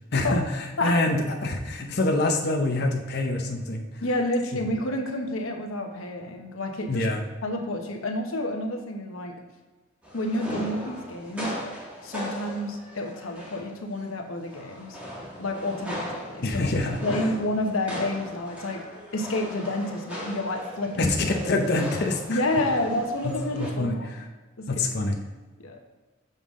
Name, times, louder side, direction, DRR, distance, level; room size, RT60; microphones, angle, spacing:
voice 1, 0.1-3.8 4.5-4.6 6.9-7.2 16.4-17.2 21.0-22.4 23.2-24.3 24.7-25.2, left 2 dB, 55° left, 2 dB, 0.7 m, -26 dB
voice 2, 4.0-7.1 7.4-9.3 10.1-11.5 12.0-15.0 15.4-16.7 17.0-18.8 19.1-21.7 22.3-24.1 24.6-24.9 25.6-25.8, left 1 dB, 85° left, 3 dB, 1.0 m, -29 dB
sound 1, 10.0-14.0 14.4-23.7, equal, 5° right, 1.6 m, -38 dB
6.8 x 5.5 x 3.7 m, 1.3 s
head